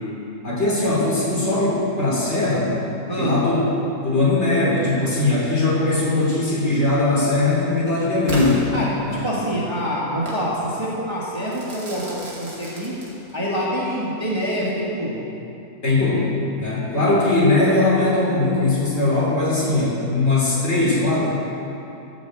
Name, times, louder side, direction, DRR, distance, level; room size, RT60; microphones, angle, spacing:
voice 1, 0.4-2.7 3.2-3.6 4.0-8.7 9.0-9.2 15.8-16.3 16.6-21.3, left 2 dB, 45° left, -6 dB, 3.8 m, -20 dB
voice 2, 3.1-3.4 8.7-8.9 9.2-13.0 13.3-15.2, equal, 20° right, -6 dB, 1.7 m, -26 dB
Crackle / Fireworks, 8.3-9.4 10.3-10.5 11.5-13.5, equal, 65° right, 2.8 m, -33 dB
13.0 x 7.2 x 7.9 m, 2.9 s
omnidirectional pair, 1.7 m